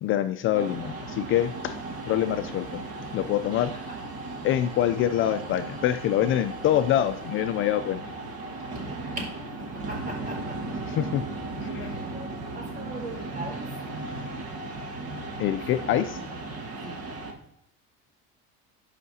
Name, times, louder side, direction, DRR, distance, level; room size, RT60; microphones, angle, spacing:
voice 1, 0.0-1.8 2.1-2.8 3.1-3.7 4.4-8.1 11.0-11.2 11.6-11.7 15.4-16.2, left 11 dB, 45° left, 9 dB, 0.4 m, -25 dB
sound 1, 0.5-17.3, right 2 dB, 50° right, 1.8 m, -36 dB
voice 2, 3.6-4.0 8.7-10.8 11.5-13.7 15.4-16.1 16.8-17.0, right 1 dB, 30° right, -2 dB, 4.3 m, -41 dB
17.0 x 5.7 x 2.8 m, 0.73 s
cardioid pair, 140°, 30 cm